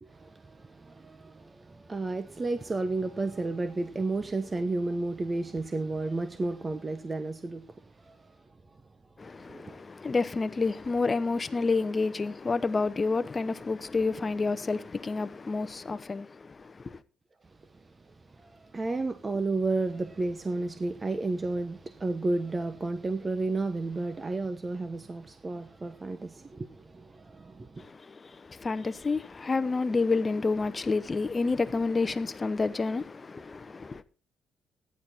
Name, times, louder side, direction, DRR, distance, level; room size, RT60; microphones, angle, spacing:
voice 1, 0.0-8.3 9.5-9.8 17.7-27.8, right 2 dB, 25° right, 1.1 m, -32 dB
voice 2, 9.2-17.0 27.8-34.0, left 4 dB, 30° left, 1.0 m, -29 dB
14.0 x 10.5 x 4.4 m
cardioid pair, 90°, 0 cm